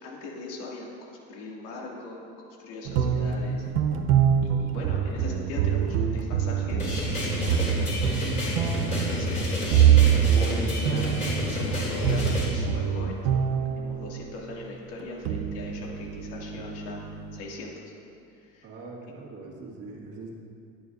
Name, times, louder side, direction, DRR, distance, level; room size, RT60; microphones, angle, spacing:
voice 1, 0.0-3.7 4.4-8.2 8.7-9.7 10.3-11.1 11.5-13.2 13.7-17.0 17.3-17.9 18.3-18.7, left 3 dB, 85° left, -3 dB, 2.6 m, -40 dB
sound 1, 2.8-14.3 15.0-17.4, right 9 dB, 80° right, 0.9 m, -25 dB
sound 2, 6.8-12.4, equal, 20° left, 3.1 m, -29 dB
voice 2, 18.6-20.3, right 3 dB, 45° right, -2 dB, 1.9 m, -42 dB
20.0 x 9.3 x 2.7 m, 2.5 s
cardioid pair, 165°, 33 cm